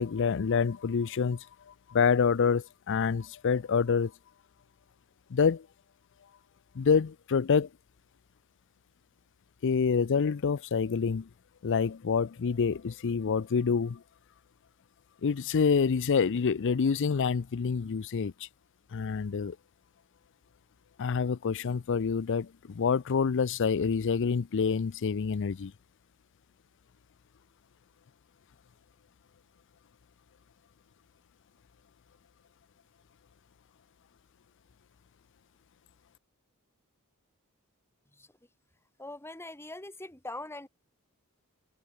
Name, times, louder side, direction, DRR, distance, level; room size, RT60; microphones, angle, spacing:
voice 1, 0.0-1.5 1.9-4.1 5.3-5.7 6.7-7.7 9.6-11.3 11.6-14.0 15.2-18.3 18.9-19.6 21.0-25.7, left 6 dB, 55° left, 0.5 m, -27 dB
voice 2, 39.0-40.7, left 2 dB, 10° left, 2.8 m, -42 dB
head